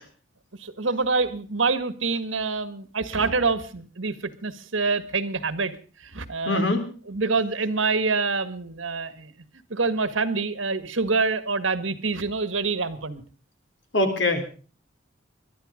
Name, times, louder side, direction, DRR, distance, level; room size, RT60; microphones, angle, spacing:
voice 1, 0.6-6.6 7.1-9.3 9.7-13.2, right 4 dB, 80° right, 14 dB, 1.7 m, -26 dB
voice 2, 6.5-6.8 13.9-14.4, left 2 dB, 65° left, 7 dB, 3.7 m, -22 dB
22.0 x 12.5 x 5.1 m, 0.39 s
head